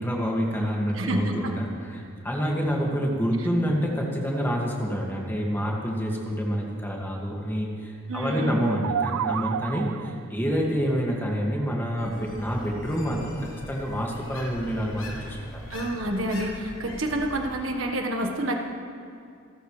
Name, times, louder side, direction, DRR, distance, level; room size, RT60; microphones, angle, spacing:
voice 1, 0.0-15.6, equal, 10° left, -2 dB, 2.2 m, -27 dB
voice 2, 0.9-1.6 8.1-8.7 15.7-18.6, right 1 dB, 65° right, 2 dB, 1.6 m, -28 dB
sound 1, 8.5-10.3, right 8 dB, 90° right, 0.3 m, -30 dB
sound 2, 12.0-17.5, left 1 dB, 65° left, 3.5 m, -41 dB
27.0 x 13.5 x 3.4 m, 2.4 s
head